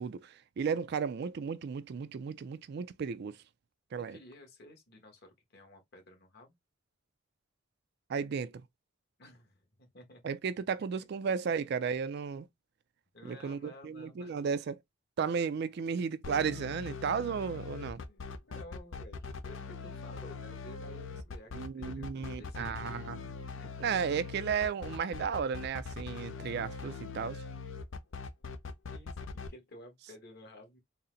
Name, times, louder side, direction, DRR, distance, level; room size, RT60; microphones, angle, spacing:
voice 1, 0.0-3.4 3.9-4.2 8.1-8.5 10.2-12.5 13.2-14.8 15.2-18.0 21.5-23.2 23.8-27.4, right 6 dB, 55° right, 0.3 m, -34 dB
voice 2, 4.1-6.6 9.2-10.2 11.3-11.4 13.1-14.4 18.1-23.0 23.6-23.8 28.9-30.8, left 1 dB, 55° left, 1.3 m, -53 dB
sound 1, 16.2-29.5, left 4 dB, 75° left, 0.6 m, -42 dB
4.1 x 2.1 x 3.8 m
head